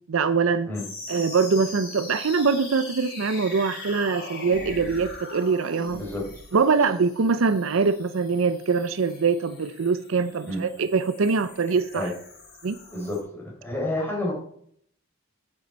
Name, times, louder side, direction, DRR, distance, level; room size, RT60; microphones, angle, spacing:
voice 1, 0.1-0.7 1.1-6.0 6.5-12.1 12.6-12.8, right 5 dB, 65° right, 0.5 m, -23 dB
sound 1, 0.7-13.2, left 2 dB, 50° left, 3.8 m, -41 dB
voice 2, 5.9-6.3 10.5-10.6 11.9-12.1 12.9-14.3, left 1 dB, 10° left, 3.9 m, -29 dB
9.4 x 7.7 x 4.5 m
head